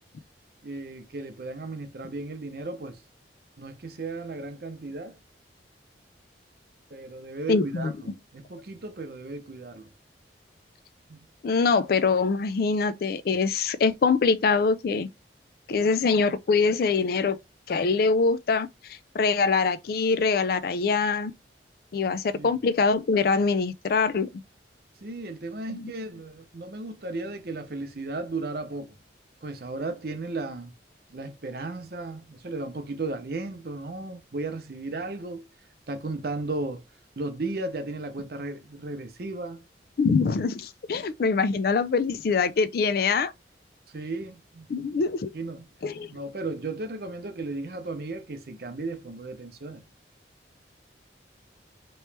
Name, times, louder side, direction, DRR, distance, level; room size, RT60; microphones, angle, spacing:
voice 1, 0.6-3.0 3.6-5.2 6.9-7.9 8.3-9.9 11.1-11.3 22.3-22.6 25.0-29.0 29.4-30.7 31.1-35.5 35.9-36.8 37.2-39.6 43.9-44.7 45.3-45.7 46.1-49.8, right 2 dB, 55° right, 0.7 m, -35 dB
voice 2, 7.5-7.9 11.4-15.1 15.7-17.4 17.7-21.3 21.9-24.3 25.7-25.9 40.0-43.3 44.7-45.3 45.8-46.1, left 4 dB, 55° left, 0.4 m, -24 dB
3.0 x 3.0 x 3.2 m
head